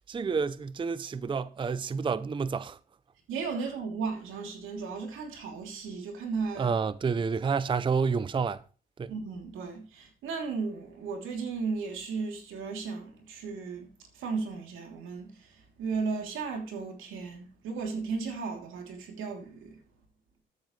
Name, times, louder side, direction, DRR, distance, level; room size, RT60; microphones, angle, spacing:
voice 1, 0.1-2.8 6.6-8.6 9.0-9.1, right 5 dB, 25° right, 0.5 m, -29 dB
voice 2, 3.3-6.7 9.1-13.9 14.1-15.5 15.8-19.8, right 4 dB, 85° right, 3.1 m, -35 dB
13.0 x 9.4 x 3.2 m
cardioid pair, 90°, 20 cm